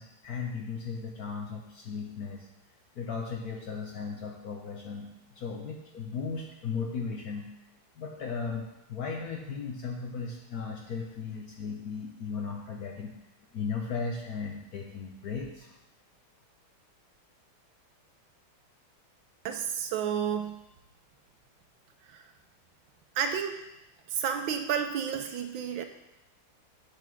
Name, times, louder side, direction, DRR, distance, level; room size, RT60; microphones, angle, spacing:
voice 1, 0.0-2.5 3.0-7.5 8.0-13.1 13.5-15.8, left 5 dB, 60° left, 1 dB, 1.0 m, -36 dB
voice 2, 19.4-20.6 22.1-22.2 23.2-23.5 24.1-25.8, right 7 dB, 75° right, 6 dB, 1.3 m, -31 dB
7.8 x 3.6 x 6.2 m, 0.89 s
omnidirectional pair, 2.3 m